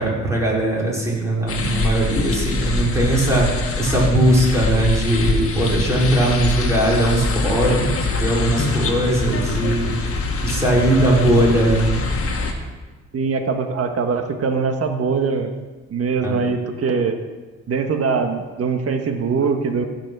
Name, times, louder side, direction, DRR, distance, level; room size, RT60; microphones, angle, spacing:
voice 1, 0.0-9.9 10.4-11.9 16.2-16.4, right 1 dB, 10° right, -5 dB, 4.7 m, -19 dB
sound 1, 1.5-12.5, left 3 dB, 50° left, 1.7 m, -24 dB
voice 2, 13.1-15.5 15.9-17.2 17.7-19.8, right 5 dB, 50° right, 5 dB, 1.5 m, -22 dB
15.5 x 6.1 x 6.2 m, 1.2 s
cardioid pair, 90°, 30 cm